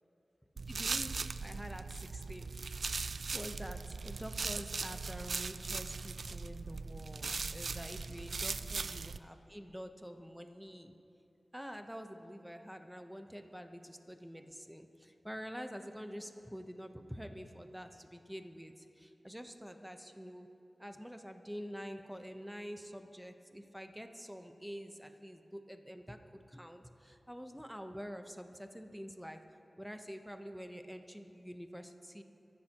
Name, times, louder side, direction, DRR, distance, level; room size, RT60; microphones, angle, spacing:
sound 1, 0.6-9.2, right 4 dB, 75° right, 0.4 m, -39 dB
voice 1, 0.7-2.6 3.0-10.9 11.5-20.5 20.8-29.4 29.8-32.2, equal, 5° right, 6 dB, 0.9 m, -47 dB
24.5 x 14.5 x 3.0 m, 2.8 s
wide cardioid pair, 70°, 0 cm